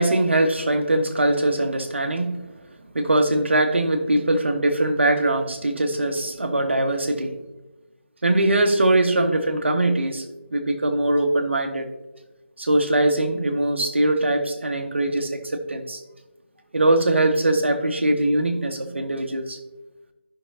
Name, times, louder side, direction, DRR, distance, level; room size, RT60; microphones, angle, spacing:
voice 1, 0.0-2.4 2.9-7.3 8.2-10.2 10.5-11.9 12.6-16.0 16.7-19.6, right 1 dB, 70° right, 5 dB, 1.4 m, -21 dB
14.5 x 6.0 x 2.8 m, 1.1 s
figure-of-eight pair, 155°, 7 cm